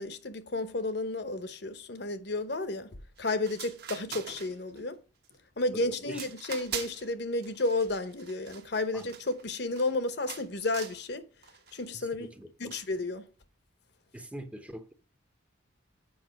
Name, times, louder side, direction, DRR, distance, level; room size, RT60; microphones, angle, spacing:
voice 1, 0.0-5.0 5.6-11.3 11.7-12.3 12.6-13.2, left 2 dB, 55° left, 0.9 m, -32 dB
sound 1, 3.2-3.3 3.5-4.8 5.2-5.6 6.1-7.1 7.4-10.0 10.3-11.0 11.4-11.8 12.7-13.0, right 8 dB, 55° right, 1.2 m, -43 dB
voice 2, 5.7-6.3 8.9-9.0 11.9-12.7 14.1-14.9, equal, 5° right, 0.7 m, -43 dB
8.0 x 5.5 x 5.1 m
head